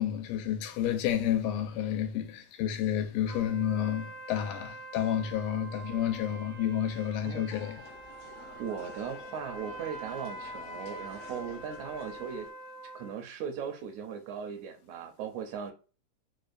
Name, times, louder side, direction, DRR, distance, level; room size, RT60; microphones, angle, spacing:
voice 1, 0.0-7.9, left 10 dB, 90° left, 2.2 m, -30 dB
sound 1, 3.3-13.2, right 2 dB, 50° left, 0.5 m, -45 dB
sound 2, 7.5-12.5, left 6 dB, 70° left, 1.5 m, -50 dB
voice 2, 8.6-12.5 13.0-15.7, right 7 dB, 80° right, 1.8 m, -38 dB
5.1 x 2.1 x 2.4 m
omnidirectional pair, 3.6 m